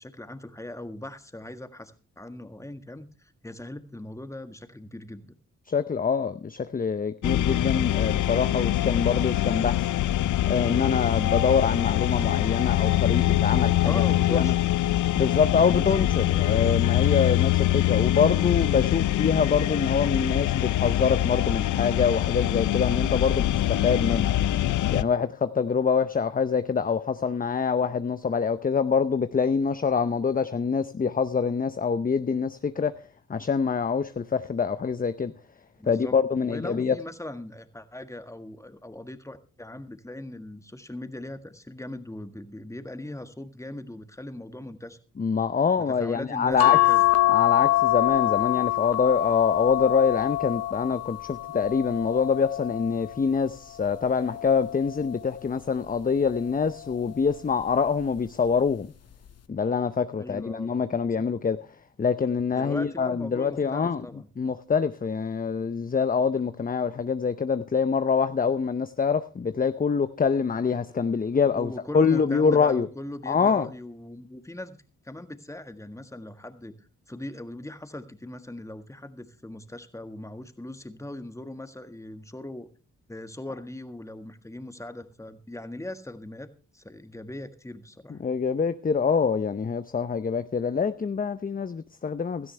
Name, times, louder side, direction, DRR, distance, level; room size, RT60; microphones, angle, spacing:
voice 1, 0.0-5.3 13.7-14.6 15.2-16.2 35.8-36.1 36.4-45.0 45.8-47.1 60.2-60.7 62.5-64.3 71.5-74.8 75.0-82.7 83.1-88.2, left 1 dB, 10° left, 1.6 m, -39 dB
voice 2, 5.7-9.9 10.5-14.0 14.3-14.5 15.1-24.4 24.9-33.0 33.3-35.3 35.9-37.0 45.2-46.8 47.3-58.9 59.5-61.6 62.0-64.0 64.4-72.9 73.3-73.7 88.1-92.5, left 6 dB, 25° left, 0.7 m, -25 dB
sound 1, 7.2-25.0, left 14 dB, 70° left, 0.6 m, -24 dB
sound 2, 46.6-53.2 53.9-55.3 56.5-56.9 57.3-57.4, left 16 dB, 50° left, 0.9 m, -25 dB
17.0 x 12.5 x 3.3 m
supercardioid pair, 55°, 31 cm